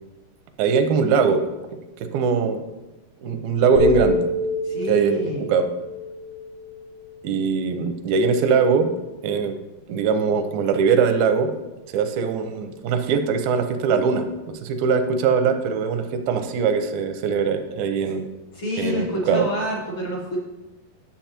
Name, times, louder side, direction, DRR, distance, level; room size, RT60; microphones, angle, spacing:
voice 1, 0.6-1.4 2.0-2.6 3.2-4.3 4.9-5.2 5.5-5.7 7.2-8.9 9.2-9.6 9.9-11.5 11.9-18.3 18.8-19.5, right 5 dB, 90° right, 7 dB, 2.5 m, -21 dB
sound 1, 3.8-7.8, left 2 dB, 80° left, 1.3 m, -27 dB
voice 2, 4.6-5.5 18.5-20.4, equal, 45° left, -4 dB, 1.9 m, -28 dB
11.5 x 7.2 x 2.9 m, 1.1 s
omnidirectional pair, 4.2 m